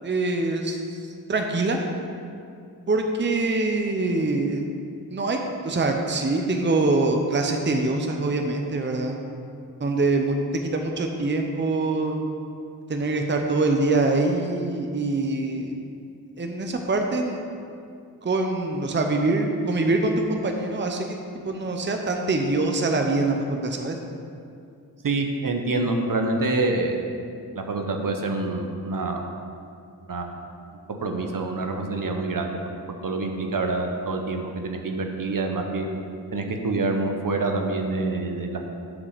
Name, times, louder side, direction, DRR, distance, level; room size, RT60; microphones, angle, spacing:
voice 1, 0.0-1.8 2.9-4.7 5.1-5.4 5.6-9.2 9.8-12.2 12.9-15.8 16.4-17.4 18.2-21.2 21.4-24.0, right 2 dB, 30° right, 3 dB, 0.7 m, -24 dB
voice 2, 25.0-27.0 27.5-29.2 30.1-30.4 30.9-32.6 33.0-35.8 36.3-38.7, right 3 dB, 55° right, 3 dB, 0.9 m, -26 dB
6.7 x 5.1 x 6.6 m, 2.4 s
cardioid pair, 50°, 39 cm